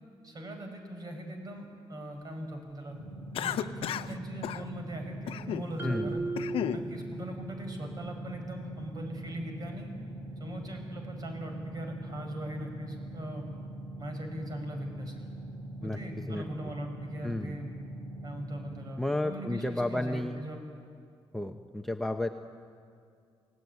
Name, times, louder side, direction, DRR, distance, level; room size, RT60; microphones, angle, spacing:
voice 1, 0.2-3.0 3.4-6.3 6.7-9.9 10.4-13.5 14.0-15.3 15.8-17.7 18.2-20.6, equal, 45° right, 4 dB, 5.2 m, -40 dB
sound 1, 2.9-18.9, right 1 dB, 60° right, 6.6 m, -42 dB
Cough, 3.3-4.1 4.4-4.6 5.3-5.7 6.1-6.8, left 10 dB, 85° left, 0.7 m, -33 dB
voice 2, 5.8-6.2 15.8-16.4 17.2-17.6 19.0-20.4 21.3-22.3, left 1 dB, 5° left, 4 dB, 0.9 m, -32 dB
Marimba xylophone, 5.8-7.5, right 2 dB, 25° right, 3.1 m, -36 dB
28.0 x 18.0 x 9.5 m, 2.3 s
cardioid pair, 130°, 9 cm